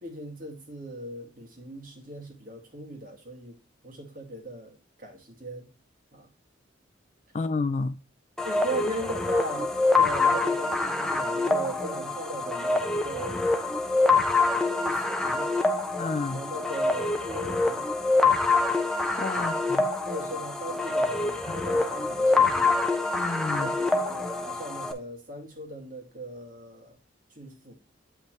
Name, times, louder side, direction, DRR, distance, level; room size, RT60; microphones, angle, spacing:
voice 1, 0.0-3.6 3.8-5.7 6.1-6.3 8.4-13.4 14.7-15.5 16.3-17.9 19.3-19.5 20.0-22.8 23.6-27.0 27.4-27.7, right 1 dB, 45° right, 2.1 m, -38 dB
voice 2, 7.3-8.0 16.0-16.4 19.2-19.9 21.5-21.6 23.1-23.7, left 3 dB, 35° left, 0.3 m, -30 dB
sound 1, 8.4-24.9, left 3 dB, 5° left, 0.7 m, -25 dB
8.7 x 5.3 x 3.1 m
head